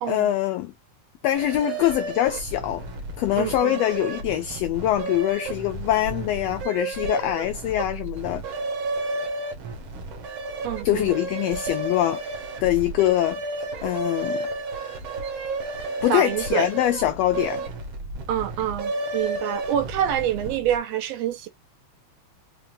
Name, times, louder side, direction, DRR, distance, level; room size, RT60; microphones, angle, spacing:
voice 1, 0.1-0.7 1.2-2.8 3.2-8.4 10.8-12.2 12.6-13.4 13.8-14.5 16.0-17.7, left 13 dB, 80° left, 1.5 m, -23 dB
sound 1, 1.3-20.8, right 2 dB, 60° right, 1.5 m, -32 dB
voice 2, 3.4-3.8 10.6-11.1 16.1-16.7 18.3-21.5, right 10 dB, 75° right, 1.6 m, -26 dB
5.0 x 2.7 x 2.6 m
omnidirectional pair, 3.3 m